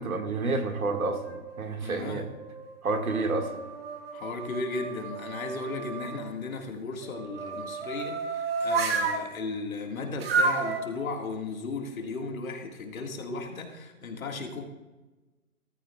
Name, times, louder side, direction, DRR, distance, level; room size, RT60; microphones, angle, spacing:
voice 1, 0.0-2.3 2.8-3.6, right 3 dB, 80° right, 5 dB, 1.9 m, -29 dB
sound 1, 0.8-1.7 2.3-6.2 7.0-9.2 10.2-10.8, right 4 dB, 45° right, 1.4 m, -32 dB
voice 2, 1.8-2.2 4.1-14.6, left 3 dB, 70° left, 3 dB, 2.0 m, -36 dB
14.0 x 13.5 x 2.3 m, 1.2 s
hypercardioid pair, 160°, 42 cm